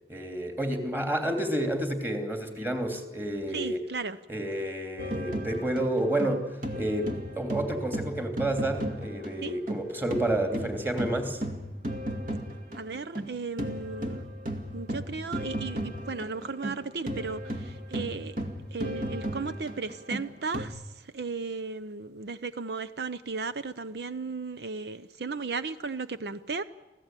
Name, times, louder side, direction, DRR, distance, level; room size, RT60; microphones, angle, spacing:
voice 1, 0.1-3.8 4.3-11.4, right 1 dB, 10° right, 5 dB, 2.8 m, -30 dB
voice 2, 3.5-4.2 9.4-9.6 12.7-14.3 14.7-18.4 18.7-26.6, right 4 dB, 70° right, 13 dB, 0.7 m, -35 dB
sound 1, 5.0-9.8 10.1-20.7, equal, 50° right, 2.2 m, -35 dB
26.5 x 16.0 x 9.1 m, 1.2 s
head